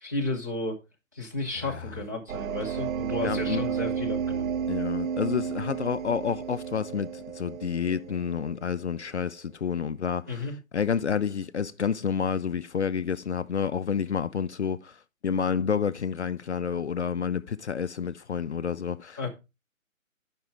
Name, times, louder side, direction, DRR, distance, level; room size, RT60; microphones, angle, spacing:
voice 1, 0.0-0.8 1.1-4.5 10.3-10.5 19.2-19.3, left 2 dB, 15° right, 0.6 m, -32 dB
voice 2, 1.6-1.9 3.2-3.6 4.7-15.0 15.2-19.3, left 7 dB, 55° left, 0.5 m, -29 dB
sound 1, 2.3-8.8, right 7 dB, 75° right, 0.5 m, -32 dB
10.5 x 5.3 x 3.3 m
figure-of-eight pair, 155°, 41 cm